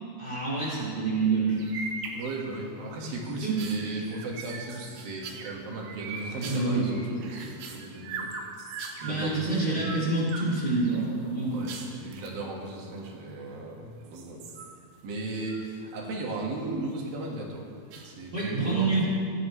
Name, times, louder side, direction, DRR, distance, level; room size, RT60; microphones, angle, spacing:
voice 1, 0.2-1.6 3.4-3.6 3.9-4.0 6.4-7.0 9.0-11.7 18.3-19.1, right 3 dB, 15° right, -8 dB, 2.9 m, -27 dB
sound 1, 1.5-2.7 3.1-9.2 9.6-10.5 10.8-12.4 13.1-13.7 14.0-16.1 16.4-17.0 17.9-18.4, right 4 dB, 90° right, 3.1 m, -41 dB
voice 2, 2.1-8.3 9.0-9.9 11.5-14.4 15.0-17.6 18.0-19.0, right 2 dB, 70° right, -2 dB, 3.4 m, -36 dB
16.5 x 12.0 x 3.2 m, 2.3 s
omnidirectional pair, 4.4 m